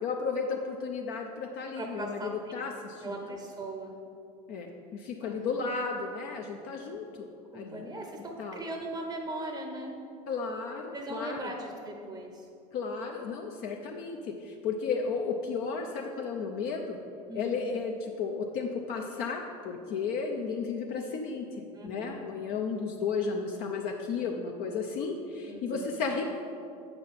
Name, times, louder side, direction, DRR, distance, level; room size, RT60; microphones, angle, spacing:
voice 1, 0.0-3.2 4.5-7.3 7.5-7.8 8.4-8.6 10.3-11.5 12.7-17.0 17.3-26.3, left 5 dB, 55° left, 1 dB, 0.7 m, -33 dB
voice 2, 1.8-2.3 3.0-4.0 5.2-5.4 6.8-6.9 7.5-9.9 10.9-12.5 17.3-17.6 21.7-22.2 25.5-25.9, right 2 dB, 15° right, 3 dB, 0.7 m, -39 dB
7.7 x 5.8 x 4.2 m, 2.5 s
hypercardioid pair, 100°, 20 cm